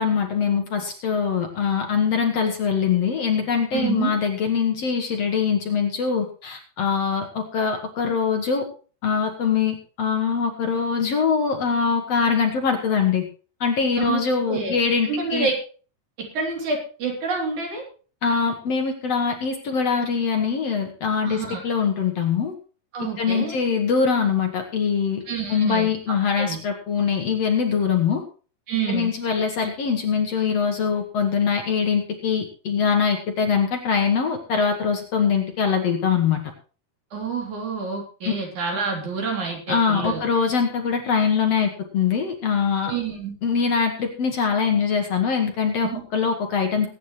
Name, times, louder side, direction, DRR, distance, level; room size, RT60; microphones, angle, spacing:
voice 1, 0.0-8.7 9.0-13.2 13.6-15.5 18.2-22.5 23.2-25.2 25.5-28.2 28.9-36.4 39.7-42.9 43.4-46.9, left 6 dB, 55° left, 4 dB, 2.2 m, -23 dB
voice 2, 3.7-4.1 14.0-14.2 14.5-14.8 15.1-15.6 16.2-17.8 21.2-21.6 22.9-23.5 25.3-26.6 28.7-29.1 37.1-40.2 42.8-43.3 45.8-46.0, right 5 dB, 60° right, 1 dB, 4.7 m, -28 dB
22.0 x 9.5 x 3.2 m, 0.38 s
omnidirectional pair, 3.9 m